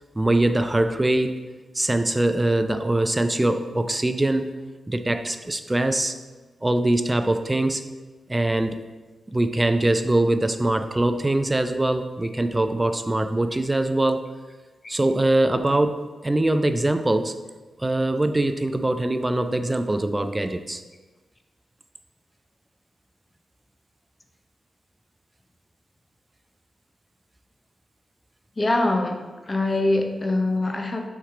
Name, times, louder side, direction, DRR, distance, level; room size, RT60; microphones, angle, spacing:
voice 1, 0.2-1.4 1.7-4.5 4.9-6.2 6.6-7.8 8.3-8.8 9.3-14.3 14.9-17.3 17.8-20.8, right 1 dB, 25° right, 8 dB, 0.3 m, -22 dB
voice 2, 28.6-31.1, left 2 dB, 35° left, 4 dB, 0.6 m, -23 dB
4.6 x 2.8 x 3.7 m, 1.2 s
supercardioid pair, 40°, 0 cm